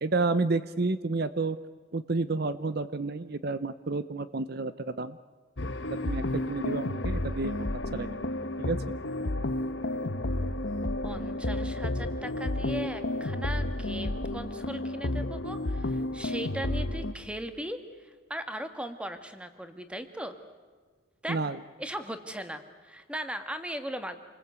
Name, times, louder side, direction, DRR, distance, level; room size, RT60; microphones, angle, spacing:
voice 1, 0.0-1.6 1.9-5.2 5.9-8.3 8.6-8.9 21.3-21.6, right 3 dB, 50° right, 14 dB, 0.7 m, -30 dB
sound 1, 5.6-17.1, left 1 dB, 60° left, 1.1 m, -31 dB
voice 2, 11.0-20.4 21.2-21.4 21.8-24.2, equal, 5° right, 8 dB, 1.6 m, -38 dB
28.0 x 20.5 x 8.2 m, 1.5 s
head